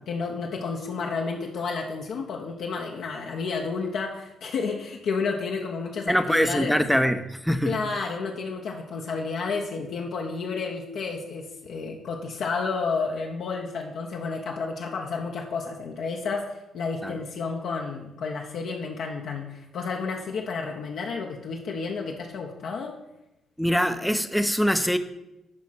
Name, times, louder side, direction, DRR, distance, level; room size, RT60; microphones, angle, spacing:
voice 1, 0.0-6.8 7.6-22.9, left 4 dB, 70° left, 0 dB, 1.1 m, -31 dB
voice 2, 6.1-7.8 17.0-17.2 23.6-25.0, equal, ahead, 10 dB, 0.7 m, -23 dB
11.5 x 4.3 x 5.9 m, 0.92 s
cardioid pair, 90°, 0 cm